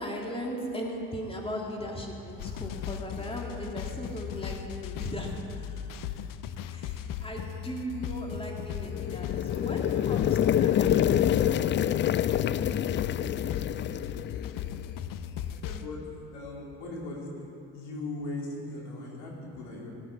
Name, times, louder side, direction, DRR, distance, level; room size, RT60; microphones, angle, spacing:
voice 1, 0.0-5.4 6.7-11.4 12.7-12.9, equal, 15° left, 0 dB, 2.4 m, -37 dB
sound 1, 2.4-15.9, left 10 dB, 50° left, 0.8 m, -37 dB
sound 2, 8.8-14.8, left 10 dB, 30° left, 0.3 m, -27 dB
voice 2, 15.6-16.0 16.3-20.0, left 2 dB, 75° left, -2 dB, 2.7 m, -39 dB
17.5 x 9.7 x 4.9 m, 2.7 s
hypercardioid pair, 55°, 42 cm